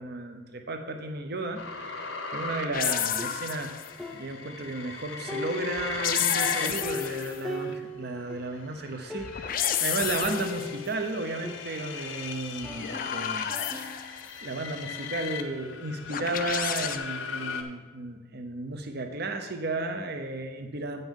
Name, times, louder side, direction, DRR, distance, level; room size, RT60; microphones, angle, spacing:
voice 1, 0.0-3.7 4.1-13.5 13.8-21.0, right 2 dB, 50° right, 5 dB, 0.8 m, -34 dB
sound 1, 1.6-7.7 8.4-17.6, left 5 dB, 65° left, 0.8 m, -39 dB
sound 2, 2.7-4.0 5.8-7.4 9.2-10.8 12.6-14.3 16.1-17.0, left 9 dB, 45° left, 0.5 m, -31 dB
sound 3, 3.2-4.9 5.3-8.6 8.8-8.9 9.1-9.7 10.2-12.2 12.6-14.3, left 3 dB, ahead, 0.6 m, -40 dB
9.1 x 5.5 x 5.5 m, 1.4 s
head